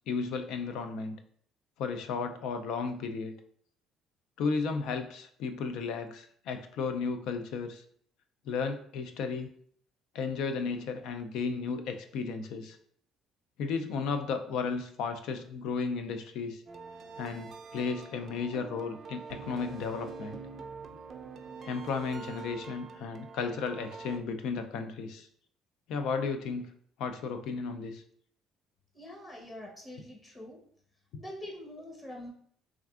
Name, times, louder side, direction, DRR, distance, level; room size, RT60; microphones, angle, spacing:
voice 1, 0.1-1.2 1.8-3.3 4.4-7.8 8.5-9.5 10.1-12.8 13.6-16.6 17.2-20.4 21.6-25.3 25.9-26.7 27.0-28.0 31.1-31.2, left 5 dB, 75° left, 8 dB, 0.3 m, -34 dB
sound 1, 16.7-24.2, right 5 dB, 50° right, 0.4 m, -45 dB
voice 2, 28.9-30.6 31.2-32.3, left 1 dB, 30° left, -1 dB, 1.1 m, -44 dB
3.4 x 2.4 x 2.4 m, 0.62 s
supercardioid pair, 75°, 0 cm